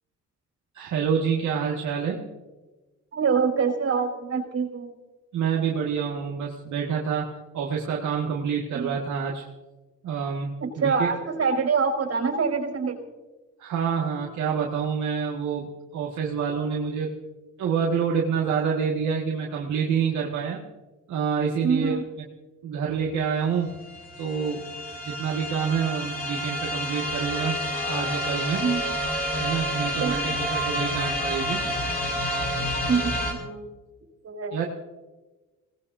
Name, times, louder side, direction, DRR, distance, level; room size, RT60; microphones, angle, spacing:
voice 1, 0.7-2.2 5.3-7.3 7.5-9.4 10.0-11.1 13.6-17.1 17.6-20.6 21.1-21.9 22.6-23.7 24.2-24.6 25.0-27.6 27.9-28.6 29.4-31.7 34.5-34.6, right 6 dB, 75° right, -2 dB, 1.9 m, -27 dB
voice 2, 3.1-4.9 8.7-9.0 10.6-13.0 21.6-22.0 28.6-28.8 30.0-30.4 32.9-33.7 34.2-34.5, right 5 dB, 55° right, 2 dB, 5.3 m, -25 dB
sound 1, 23.1-23.2 23.4-33.3, equal, 30° left, 6.1 m, -29 dB
26.5 x 19.0 x 2.7 m, 1.2 s
cardioid pair, 90°, 30 cm